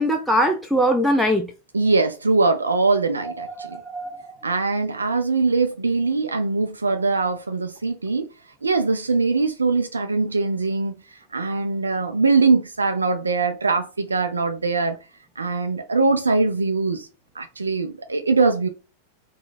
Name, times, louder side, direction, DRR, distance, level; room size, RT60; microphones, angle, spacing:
voice 1, 0.0-1.5 3.4-4.4, equal, ahead, 0.5 m, -22 dB
voice 2, 1.7-3.8 4.4-8.3 8.6-10.9 11.3-15.0 15.4-17.1 17.4-18.7, right 3 dB, 75° right, 0.4 m, -22 dB
3.8 x 2.2 x 4.1 m
figure-of-eight pair, 90°, 0 cm